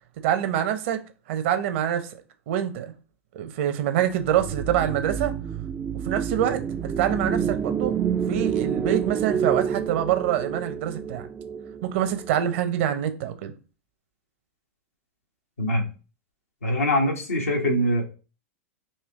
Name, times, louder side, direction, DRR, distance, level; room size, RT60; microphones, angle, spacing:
voice 1, 0.2-1.0 1.3-2.2 2.5-2.9 3.3-5.3 6.0-7.9 8.3-11.3 11.8-13.5, right 10 dB, 60° right, 0.8 m, -25 dB
sound 1, 4.2-12.6, right 7 dB, 20° right, 0.3 m, -28 dB
voice 2, 16.6-18.0, equal, 80° left, 1.3 m, -23 dB
4.4 x 3.0 x 3.6 m
hypercardioid pair, 95°, 7 cm